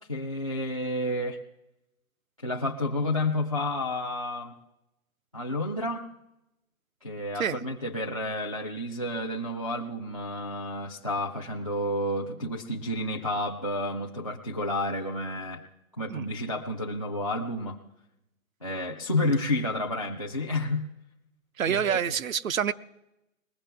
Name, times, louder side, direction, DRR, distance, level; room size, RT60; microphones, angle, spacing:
voice 1, 0.1-1.4 2.4-4.5 5.3-6.0 7.0-15.6 16.0-17.8 18.6-20.9 21.7-22.0, left 1 dB, 25° left, 3 dB, 0.4 m, -30 dB
voice 2, 21.6-22.7, right 8 dB, 70° right, 13 dB, 0.7 m, -27 dB
20.5 x 15.5 x 3.4 m, 0.90 s
hypercardioid pair, 160°, 42 cm